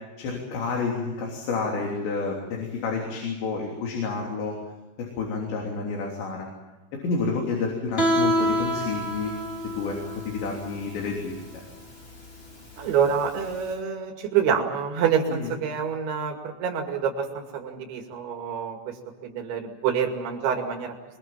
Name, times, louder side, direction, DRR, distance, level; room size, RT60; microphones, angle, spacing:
voice 1, 0.2-4.5 5.0-6.5 7.0-9.3 9.8-10.0 10.3-11.4 15.3-15.5, left 4 dB, 70° left, 0 dB, 5.5 m, -29 dB
Guitar, 8.0-13.7, equal, 20° left, 1.7 m, -28 dB
voice 2, 12.8-19.0 19.2-21.0, right 7 dB, 65° right, 2 dB, 4.2 m, -27 dB
23.0 x 23.0 x 7.4 m, 1.1 s
omnidirectional pair, 5.2 m